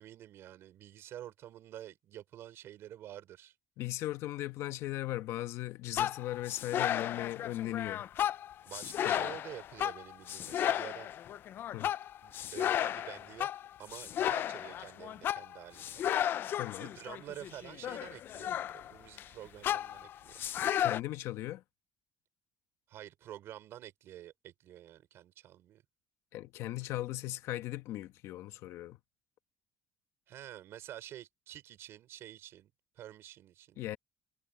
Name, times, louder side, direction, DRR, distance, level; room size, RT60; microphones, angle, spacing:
voice 1, 0.0-3.5 8.7-11.1 12.2-16.1 16.8-20.4 22.9-25.8 30.3-34.0, right 12 dB, 55° right, 5.2 m, -49 dB
voice 2, 3.8-8.1 9.0-9.3 11.7-11.9 16.5-16.9 20.8-21.6 26.3-29.0 33.8-34.0, left 15 dB, 70° left, 1.3 m, -38 dB
sound 1, 6.0-19.3 19.6-21.0, left 11 dB, 45° left, 0.4 m, -34 dB
cardioid pair, 155°, 5 cm